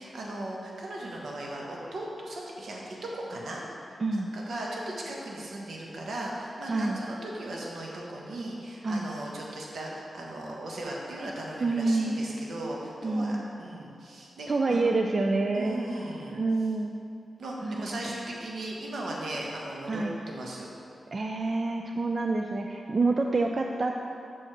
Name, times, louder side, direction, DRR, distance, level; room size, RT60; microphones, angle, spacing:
voice 1, 0.0-14.8 15.5-16.4 17.4-20.7, right 1 dB, 80° right, -2 dB, 1.2 m, -37 dB
voice 2, 6.7-7.0 8.8-9.1 11.6-12.2 13.0-13.5 14.5-15.8 16.3-16.9 17.6-18.2 19.9-20.1 21.1-24.1, right 3 dB, 45° right, 2 dB, 0.4 m, -27 dB
6.3 x 4.9 x 6.0 m, 2.6 s
wide cardioid pair, 95°, 0 cm